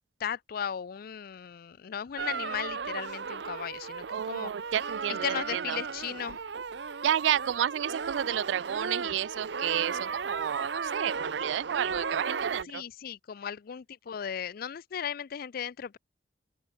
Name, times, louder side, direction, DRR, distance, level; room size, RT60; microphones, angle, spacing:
voice 1, 0.2-4.7 5.2-6.4 12.6-16.0, left 8 dB, 55° left, 0.4 m, -36 dB
sound 1, 2.2-12.6, right 5 dB, 70° right, 0.8 m, -35 dB
voice 2, 4.1-5.8 7.0-12.8, right 10 dB, 90° right, 0.3 m, -31 dB
open air
head